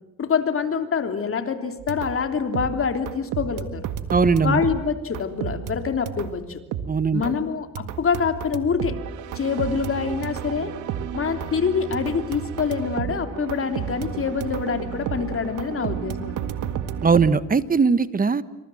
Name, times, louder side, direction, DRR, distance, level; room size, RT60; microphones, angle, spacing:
voice 1, 0.2-3.8 4.4-6.6 7.1-9.0 9.3-10.7 11.1-16.5, left 6 dB, 45° left, 7 dB, 3.2 m, -25 dB
sound 1, 1.8-2.3 2.5-6.4 6.7-7.4 7.7-17.3, right 9 dB, 85° right, 1.8 m, -32 dB
voice 2, 4.1-4.6 6.9-7.3 17.0-18.4, right 5 dB, 30° right, 15 dB, 1.3 m, -20 dB
27.5 x 26.0 x 7.8 m, 0.99 s
cardioid pair, 90°, 30 cm